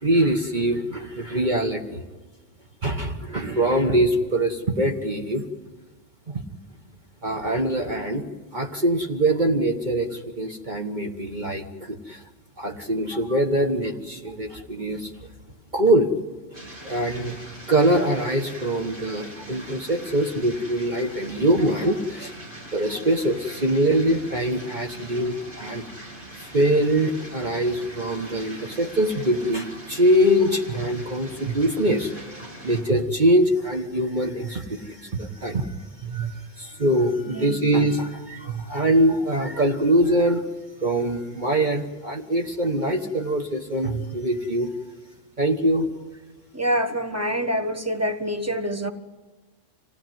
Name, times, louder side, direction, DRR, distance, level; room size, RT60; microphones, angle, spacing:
voice 1, 0.0-2.0 2.8-5.4 6.3-6.4 7.2-12.2 12.6-15.1 15.7-16.1 16.8-17.4 17.7-22.3 22.7-25.9 26.3-40.5 40.8-44.7 45.4-45.9, right 1 dB, 40° right, 3 dB, 1.4 m, -23 dB
sound 1, 16.5-32.8, right 1 dB, 75° right, 7.5 m, -42 dB
voice 2, 37.3-37.6 46.5-48.9, equal, 15° right, 7 dB, 1.2 m, -26 dB
26.5 x 16.5 x 9.3 m, 1.3 s
omnidirectional pair, 1.3 m